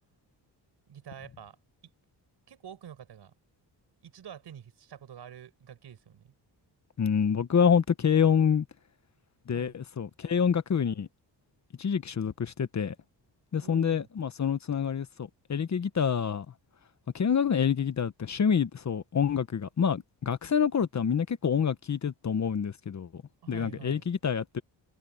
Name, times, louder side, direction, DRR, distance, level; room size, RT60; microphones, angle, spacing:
voice 1, 0.9-1.6 2.5-3.3 4.0-6.3 9.5-9.7 13.6-14.1 23.4-24.1, right 9 dB, 70° right, 5.6 m, -47 dB
voice 2, 7.0-8.6 9.5-11.1 11.8-12.9 13.5-16.4 17.1-23.2 23.5-24.6, left 7 dB, 40° left, 1.2 m, -27 dB
cardioid pair, 110°, 42 cm